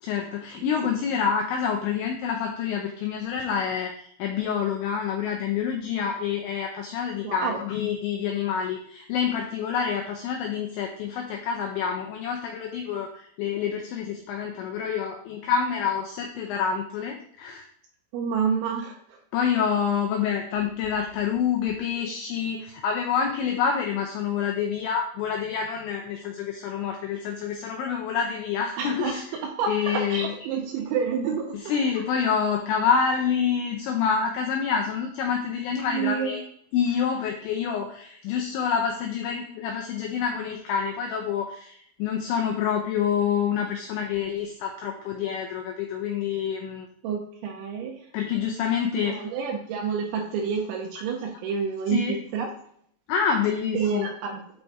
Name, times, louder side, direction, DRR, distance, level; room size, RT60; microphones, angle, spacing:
voice 1, 0.0-17.7 19.3-29.2 29.7-30.3 31.7-36.4 36.7-46.9 48.1-49.2 51.9-52.2 53.1-54.1, left 7 dB, 85° left, 2 dB, 2.6 m, -27 dB
voice 2, 7.2-7.6 18.1-19.0 28.8-31.8 35.9-36.4 47.0-48.0 48.9-52.5 53.7-54.4, right 6 dB, 90° right, 2 dB, 2.7 m, -29 dB
8.8 x 3.5 x 4.1 m, 0.65 s
omnidirectional pair, 5.9 m